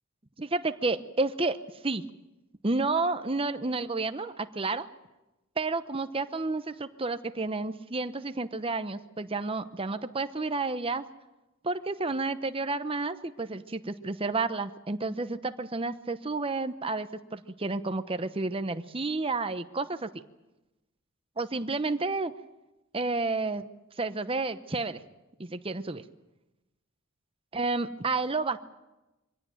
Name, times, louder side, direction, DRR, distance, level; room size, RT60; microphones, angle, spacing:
voice 1, 0.4-1.6 1.8-2.1 2.6-4.9 5.6-11.1 11.6-20.1 21.4-22.3 22.9-23.6 24.0-25.0 25.4-26.0 27.5-28.6, right 3 dB, 25° right, 10 dB, 0.9 m, -30 dB
24.0 x 16.5 x 9.1 m, 1.0 s
head